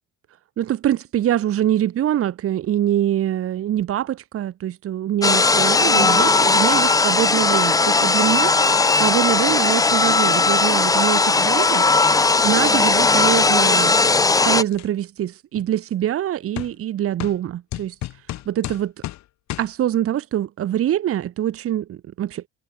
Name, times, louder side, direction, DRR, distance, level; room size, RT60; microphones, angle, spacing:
voice 1, 0.6-8.5 8.9-11.9 12.4-18.0 18.5-18.9 19.6-22.5, right 11 dB, 45° right, 1.9 m, -24 dB
sound 1, 5.2-14.6, left 3 dB, 10° left, 0.7 m, -17 dB
sound 2, 14.0-14.9 15.5-15.7 16.6-16.7 17.2-17.4 17.7-19.2 19.5-19.7, left 15 dB, 60° left, 3.2 m, -33 dB
cardioid pair, 135°, 31 cm